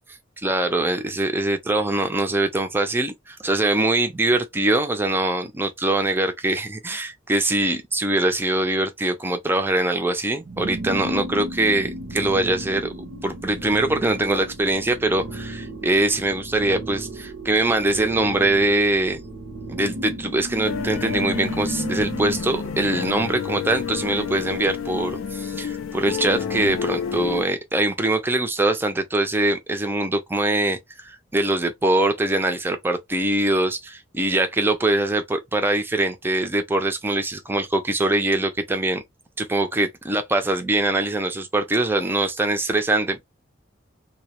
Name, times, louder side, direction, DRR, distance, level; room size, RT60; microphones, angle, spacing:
voice 1, 0.4-19.2 19.7-39.0 39.4-43.3, right 2 dB, 10° right, 0.4 m, -23 dB
sound 1, 10.4-22.4, right 1 dB, 65° right, 0.6 m, -34 dB
sound 2, 20.6-27.4, left 6 dB, 90° left, 0.4 m, -29 dB
2.1 x 2.0 x 2.8 m
head